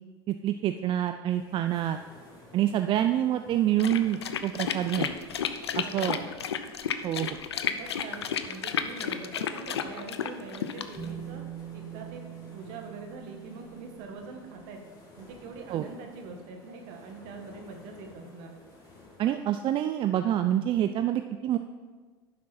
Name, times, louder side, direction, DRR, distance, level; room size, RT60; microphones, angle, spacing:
voice 1, 0.3-2.0 2.5-5.1 5.8-6.2 7.0-7.4 15.7-15.9 19.2-21.6, right 11 dB, 40° right, 8 dB, 0.4 m, -27 dB
sound 1, 1.3-19.5, left 2 dB, 30° left, 2.6 m, -54 dB
sound 2, 3.8-11.1, left 8 dB, 85° left, 0.5 m, -32 dB
voice 2, 5.8-6.3 7.6-11.5 11.7-12.2 12.5-14.8 15.2-18.6, right 4 dB, 60° right, 3 dB, 1.7 m, -43 dB
Bass guitar, 11.0-17.0, right 10 dB, 10° right, 0.7 m, -45 dB
11.0 x 6.1 x 4.3 m, 1.4 s
hypercardioid pair, 80°, 13 cm